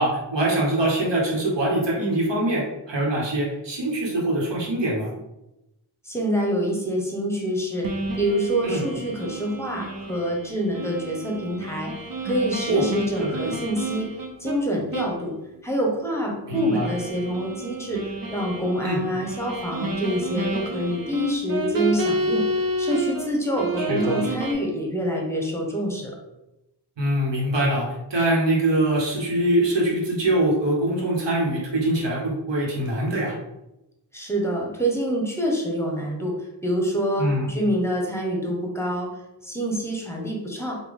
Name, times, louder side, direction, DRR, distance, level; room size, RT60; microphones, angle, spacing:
voice 1, 0.0-5.1 8.6-8.8 12.7-12.8 13.2-13.4 16.5-16.9 18.8-19.0 23.8-24.2 27.0-33.3 37.2-37.5, right 1 dB, 80° right, -4 dB, 1.1 m, -23 dB
voice 2, 6.0-11.9 12.2-14.1 14.4-15.3 15.6-22.4 22.8-26.2 34.1-36.4 36.6-39.1 39.4-40.8, equal, 5° left, -1 dB, 0.8 m, -26 dB
sound 1, 7.8-14.6 14.9-15.2 15.5-15.6 16.5-23.3 23.6-24.5, right 2 dB, 55° right, 0.7 m, -30 dB
3.3 x 2.2 x 3.6 m, 0.92 s
wide cardioid pair, 65°, 42 cm